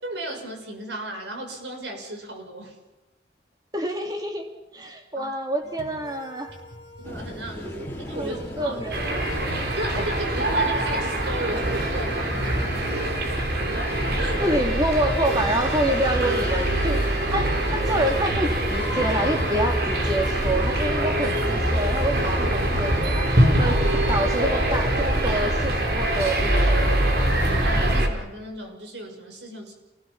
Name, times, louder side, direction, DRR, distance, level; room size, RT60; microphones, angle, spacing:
voice 1, 0.0-2.7 5.1-5.3 7.0-9.2 9.7-12.9 14.2-14.3 27.5-29.7, right 1 dB, 85° right, 3 dB, 6.7 m, -35 dB
voice 2, 3.7-4.4 4.7-6.5 8.1-8.9 9.9-10.0 14.4-17.0 17.3-23.3 23.6-23.8 24.1-26.8, right 1 dB, 20° right, 3 dB, 3.3 m, -27 dB
sound 1, 5.6-21.0, left 3 dB, 40° left, 3.3 m, -40 dB
sound 2, 7.0-25.8, equal, 10° left, 4.2 m, -38 dB
sound 3, 8.9-28.1, right 1 dB, 60° right, 3.9 m, -24 dB
29.0 x 20.0 x 5.9 m, 1.1 s
head